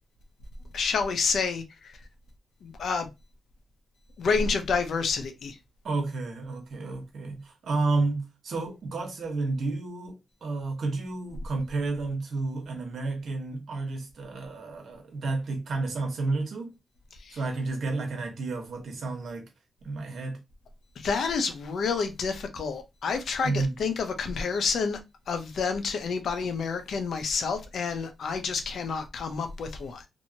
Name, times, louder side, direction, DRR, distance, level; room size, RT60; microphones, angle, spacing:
voice 1, 0.7-2.0 2.6-3.1 4.2-5.6 17.2-17.4 21.0-25.0 25.3-30.0, left 5 dB, 75° left, 0.7 m, -29 dB
voice 2, 5.8-16.7 17.3-19.5 19.8-20.4 23.4-23.7, right 3 dB, 75° right, 1.0 m, -31 dB
2.8 x 2.6 x 2.7 m
cardioid pair, 75°, 0 cm